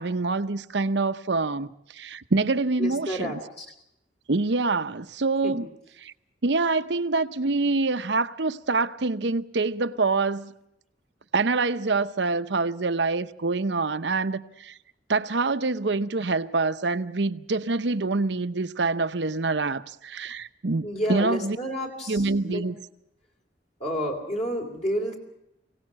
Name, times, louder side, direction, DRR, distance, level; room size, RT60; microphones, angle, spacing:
voice 1, 0.0-3.4 4.3-5.7 6.0-6.1 6.4-10.5 11.3-14.7 15.1-21.6 22.1-22.8, right 3 dB, 70° right, 0.8 m, -26 dB
voice 2, 2.8-3.7 5.4-5.5 20.8-22.7 23.8-25.2, equal, 35° left, 3.2 m, -30 dB
23.5 x 17.5 x 7.5 m
head